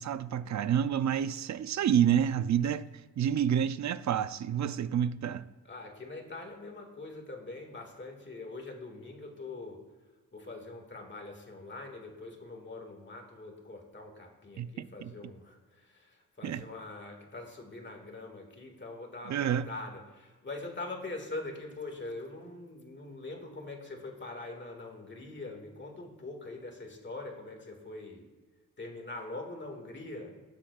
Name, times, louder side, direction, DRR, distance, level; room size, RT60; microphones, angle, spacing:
voice 1, 0.0-2.9 3.2-5.5 14.6-15.1 16.4-16.6 19.3-19.7, right 9 dB, 55° right, 0.5 m, -29 dB
voice 2, 5.6-9.8 10.3-28.3 28.8-30.3, left 2 dB, 35° left, 1.8 m, -43 dB
19.0 x 7.4 x 2.4 m
wide cardioid pair, 105°, 34 cm